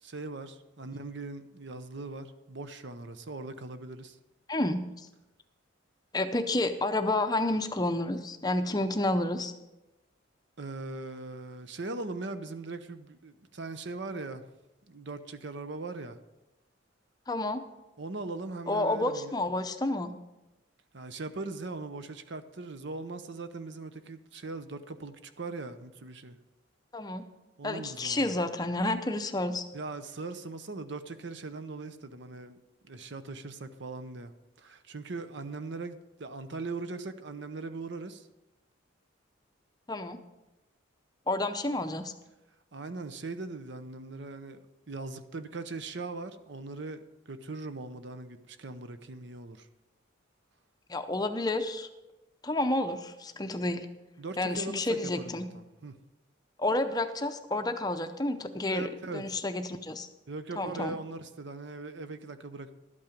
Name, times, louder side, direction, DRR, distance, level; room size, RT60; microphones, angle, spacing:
voice 1, 0.0-4.2 10.6-14.4 14.9-16.2 18.0-19.3 20.9-26.4 27.6-28.4 29.7-32.6 32.8-34.3 34.6-38.3 42.7-49.7 54.2-56.0 58.7-59.4 60.3-62.7, right 3 dB, 60° right, 0.7 m, -40 dB
voice 2, 4.5-5.1 6.1-9.5 17.3-17.6 18.7-20.1 26.9-27.3 27.6-29.6 39.9-40.2 41.3-42.1 50.9-51.9 52.4-53.9 54.4-55.5 56.6-60.1 60.6-61.0, left 2 dB, 20° left, 0.6 m, -30 dB
12.0 x 8.6 x 5.2 m
head